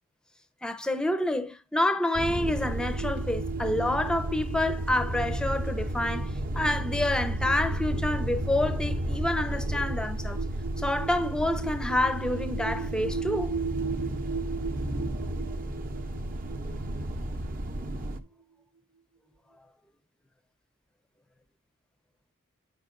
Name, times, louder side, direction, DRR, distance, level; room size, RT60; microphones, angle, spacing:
voice 1, 0.6-10.4 10.8-13.6, left 1 dB, 5° left, 0.6 m, -28 dB
sound 1, 2.1-18.2, right 1 dB, 40° right, 0.8 m, -32 dB
sound 2, 2.1-18.4, right 6 dB, 75° right, 0.8 m, -39 dB
8.9 x 5.7 x 3.7 m
head